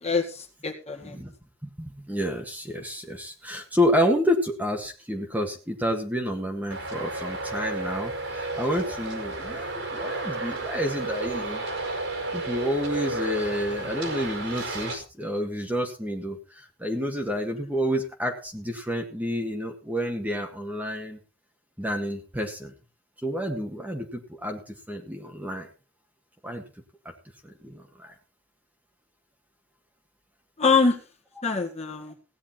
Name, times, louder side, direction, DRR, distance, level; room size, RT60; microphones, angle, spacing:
voice 1, 0.0-1.2 30.6-31.0 31.4-32.1, left 4 dB, 30° left, 3 dB, 2.0 m, -24 dB
voice 2, 1.6-11.6 12.3-21.2 21.8-22.7 23.2-25.7 26.4-26.6 27.4-28.1, equal, 10° right, 2 dB, 1.7 m, -29 dB
Traffic noise roadway noise, 6.7-14.9, right 2 dB, 75° right, 4.9 m, -32 dB
17.0 x 9.9 x 4.4 m, 0.33 s
head